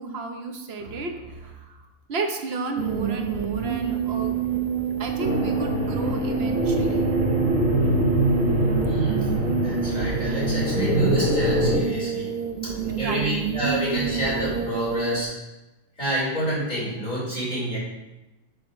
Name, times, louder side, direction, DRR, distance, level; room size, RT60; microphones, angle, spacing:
voice 1, 0.0-1.8 2.1-4.3 5.0-7.1 12.8-13.3, right 3 dB, 50° right, 4 dB, 1.0 m, -32 dB
sound 1, 2.8-15.2, right 7 dB, 70° right, 0.4 m, -28 dB
sound 2, 5.2-11.8, equal, 25° right, 2.5 m, -24 dB
voice 2, 8.8-9.3 9.6-12.4 12.6-12.7 13.0-15.3 16.0-17.8, right 1 dB, 30° left, -9 dB, 3.1 m, -28 dB
7.0 x 3.7 x 6.2 m, 1.0 s
omnidirectional pair, 1.5 m